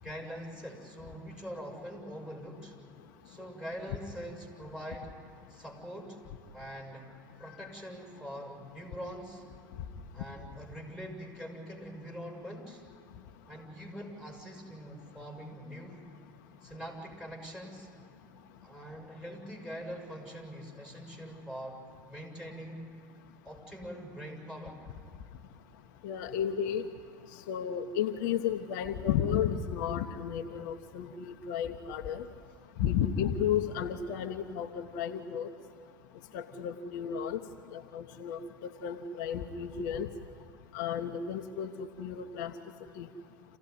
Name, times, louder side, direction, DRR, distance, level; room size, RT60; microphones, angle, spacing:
voice 1, 0.0-2.7 3.2-5.1 5.5-6.2 6.5-7.1 7.4-9.4 10.1-12.8 13.5-16.0 16.6-17.9 18.6-21.8 22.1-22.8 23.4-24.8, equal, 5° right, 2 dB, 6.8 m, -43 dB
voice 2, 26.0-26.9 27.5-32.2 32.8-35.5 36.3-37.4 37.7-40.1 40.7-42.5 43.0-43.1, left 8 dB, 65° left, 6 dB, 1.1 m, -33 dB
27.0 x 16.0 x 9.6 m, 2.4 s
hypercardioid pair, 80°, 11 cm